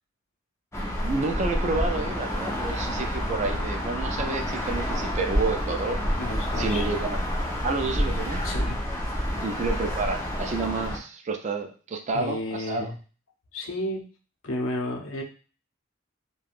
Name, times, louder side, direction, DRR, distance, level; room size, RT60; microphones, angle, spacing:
sound 1, 0.7-11.0, equal, 15° left, 0.6 m, -28 dB
voice 1, 1.0-6.1 6.6-8.4 9.3-12.9, right 3 dB, 35° right, 5 dB, 0.3 m, -30 dB
voice 2, 6.2-6.8 8.4-8.8 12.1-13.0 13.5-14.0 14.4-15.2, left 1 dB, 75° left, 1 dB, 0.7 m, -32 dB
3.3 x 2.2 x 2.4 m, 0.37 s
head